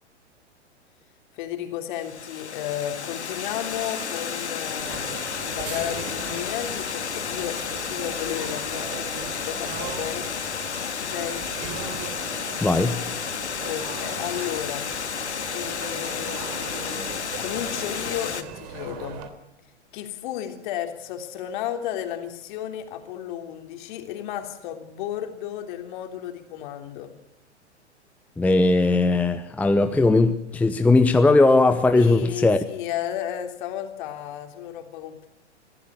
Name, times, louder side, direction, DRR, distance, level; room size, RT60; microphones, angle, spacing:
voice 1, 1.3-10.3 10.9-11.5 13.6-14.9 15.5-17.1 17.4-19.2 19.9-27.1 31.9-35.3, left 11 dB, 45° left, 6 dB, 3.3 m, -33 dB
Water, 1.9-18.4, left 6 dB, 70° left, 1.8 m, -32 dB
sound 1, 4.8-19.3, right 7 dB, 40° right, 3.3 m, -39 dB
voice 2, 12.6-13.0 28.4-32.6, left 2 dB, 5° left, 9 dB, 0.8 m, -19 dB
24.5 x 16.0 x 8.4 m, 0.80 s
figure-of-eight pair, 105°, 35 cm